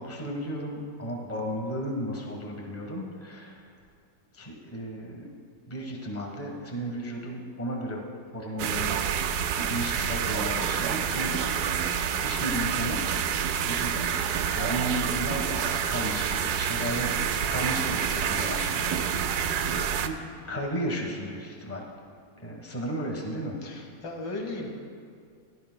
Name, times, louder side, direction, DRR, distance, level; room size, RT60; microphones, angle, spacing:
voice 1, 0.0-3.7 4.3-5.3 5.7-8.1 8.3-9.0 9.6-11.8 12.2-14.1 14.5-19.5 20.0-21.9 22.4-23.6, equal, 10° left, 0 dB, 0.9 m, -34 dB
sound 1, 8.6-20.1, right 8 dB, 70° right, 0.9 m, -28 dB
voice 2, 19.6-19.9 23.6-24.7, left 2 dB, 70° left, 2 dB, 2.0 m, -37 dB
16.5 x 11.5 x 2.2 m, 2.2 s
omnidirectional pair, 2.0 m